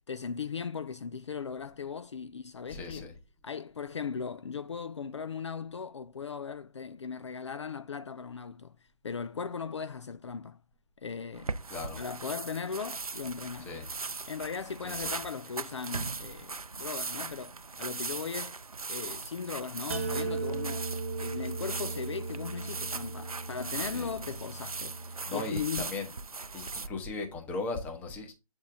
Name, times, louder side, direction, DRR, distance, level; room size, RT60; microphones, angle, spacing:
voice 1, 0.1-3.1 3.4-8.8 9.0-10.6 11.0-11.6 12.0-13.7 14.3-18.6 18.9-20.9 21.2-25.9, left 6 dB, 55° left, 0.4 m, -38 dB
voice 2, 2.7-3.1 11.7-12.0 13.7-13.9 14.8-15.0 23.8-24.1 25.3-26.1 26.5-28.3, left 3 dB, 10° left, 0.8 m, -37 dB
sound 1, 11.3-26.9, right 4 dB, 80° right, 0.5 m, -39 dB
sound 2, 19.9-25.7, right 3 dB, 25° right, 0.4 m, -37 dB
7.3 x 4.6 x 3.4 m
figure-of-eight pair, 140°, 18 cm